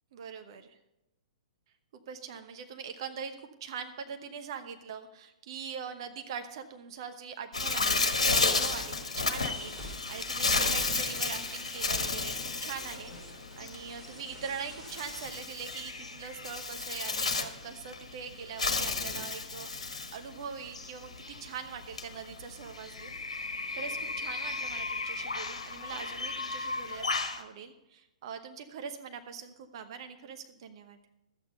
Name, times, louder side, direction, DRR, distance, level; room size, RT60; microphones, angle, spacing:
voice 1, 0.1-0.7 2.1-12.3 12.6-27.0 27.4-31.0, right 7 dB, 45° right, 7 dB, 1.0 m, -42 dB
Bird, 7.5-27.4, left 3 dB, 70° left, 1.5 m, -33 dB
sound 1, 8.4-15.3, equal, 15° right, 3.9 m, -48 dB
13.5 x 8.8 x 5.4 m, 0.94 s
figure-of-eight pair, 115°, 4 cm